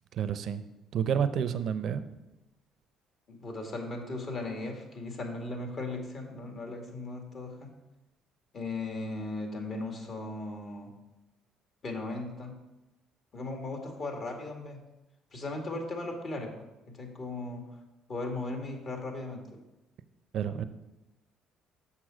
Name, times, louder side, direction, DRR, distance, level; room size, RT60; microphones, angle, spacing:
voice 1, 0.1-0.6 0.9-2.0 20.3-20.6, right 8 dB, 60° right, 12 dB, 0.6 m, -29 dB
voice 2, 3.3-7.7 8.5-10.9 11.8-12.5 13.3-14.8 15.3-17.6 18.1-19.6, left 2 dB, 45° left, 3 dB, 2.0 m, -37 dB
6.7 x 5.8 x 6.2 m, 0.99 s
supercardioid pair, 85°, 0 cm